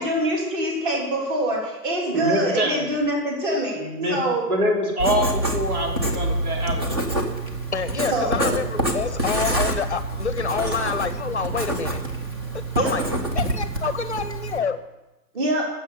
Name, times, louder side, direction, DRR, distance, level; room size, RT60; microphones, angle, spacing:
voice 1, 0.0-3.8 4.1-4.5 8.1-8.5 12.7-12.9 15.3-15.7, right 1 dB, 30° right, -1 dB, 3.5 m, -24 dB
voice 2, 2.1-2.8 3.7-4.2 4.5-7.0, equal, 65° right, 0 dB, 3.6 m, -24 dB
Writing, 5.0-14.6, right 1 dB, 15° right, 0.7 m, -26 dB
voice 3, 7.7-12.0 12.5-13.0 13.3-14.8, left 6 dB, 45° left, 12 dB, 0.7 m, -27 dB
11.5 x 7.4 x 8.8 m, 1.0 s
figure-of-eight pair, 135°, 49 cm